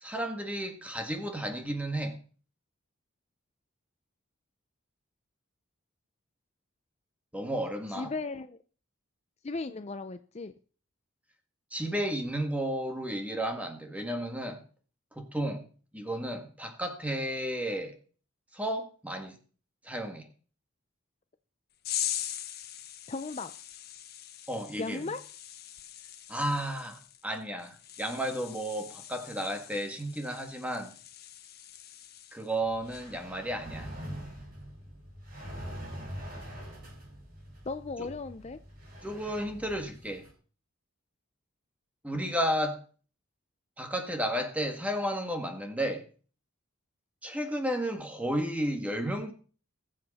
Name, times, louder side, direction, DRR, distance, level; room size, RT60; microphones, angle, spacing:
voice 1, 0.0-2.2 7.3-8.1 11.7-14.6 15.1-15.7 15.9-18.0 18.5-19.4 19.8-20.3 24.5-25.1 26.3-30.9 32.3-33.9 38.0-38.1 39.0-40.3 42.0-42.8 43.8-46.1 47.2-49.3, equal, 5° right, 1.7 m, -33 dB
voice 2, 8.0-8.6 9.4-10.5 23.1-23.5 24.8-25.2 37.7-38.6, left 3 dB, 30° left, 0.5 m, -36 dB
sound 1, 21.8-32.5 32.9-33.2, left 11 dB, 50° left, 1.0 m, -41 dB
sound 2, 32.6-40.3, equal, 45° right, 5.9 m, -44 dB
20.5 x 7.8 x 4.2 m
head